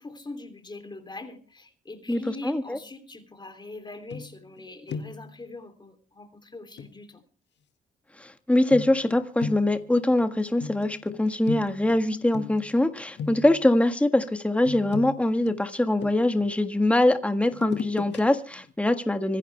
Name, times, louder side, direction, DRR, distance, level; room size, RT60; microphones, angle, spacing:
voice 1, 0.0-7.2, left 2 dB, 20° left, 7 dB, 3.1 m, -42 dB
voice 2, 2.1-2.8 8.2-19.4, left 1 dB, 5° left, 7 dB, 1.6 m, -23 dB
sound 1, 4.1-4.6 4.9-5.3 6.8-6.9 8.7-12.8 13.2-13.7 14.6-16.5 17.5-18.2 18.6-18.7, left 6 dB, 60° left, 1.9 m, -37 dB
26.0 x 11.0 x 3.4 m, 0.37 s
cardioid pair, 90°, 20 cm